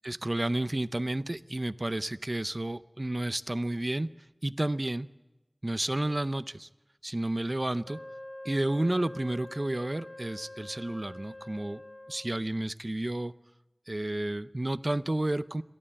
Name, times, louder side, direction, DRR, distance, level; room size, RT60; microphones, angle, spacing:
voice 1, 0.0-4.1 4.4-5.1 5.6-6.7 7.0-8.0 8.4-11.8 12.1-13.3 13.9-15.6, right 1 dB, 45° right, 14 dB, 0.6 m, -31 dB
Wind instrument woodwind instrument, 7.8-12.5, left 1 dB, 50° left, 1.1 m, -45 dB
28.0 x 12.5 x 8.8 m, 1.1 s
wide cardioid pair, 45°, 0 cm